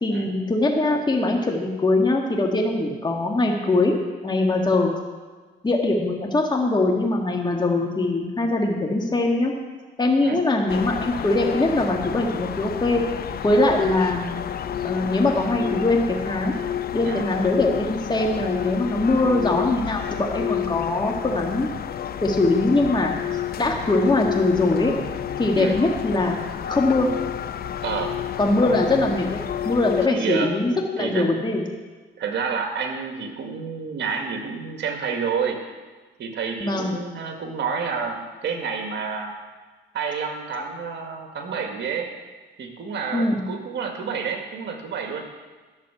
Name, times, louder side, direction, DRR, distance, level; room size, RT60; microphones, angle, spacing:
voice 1, 0.0-3.9 4.2-4.9 5.6-9.5 10.0-13.0 13.4-14.5 14.8-16.5 16.9-21.7 22.2-23.1 23.6-25.0 25.4-26.3 26.7-27.1 28.4-29.4 29.6-31.6 36.6-36.9 43.1-43.4, left 2 dB, 20° left, 0 dB, 1.8 m, -22 dB
sound 1, 10.7-30.1, left 10 dB, 50° left, 0.6 m, -30 dB
voice 2, 27.8-28.2 30.1-30.6 31.0-31.3 32.2-35.6 36.2-39.4 39.9-42.1 42.6-45.2, right 5 dB, 60° right, 4 dB, 2.0 m, -29 dB
12.0 x 6.7 x 7.7 m, 1.4 s
cardioid pair, 90°, 20 cm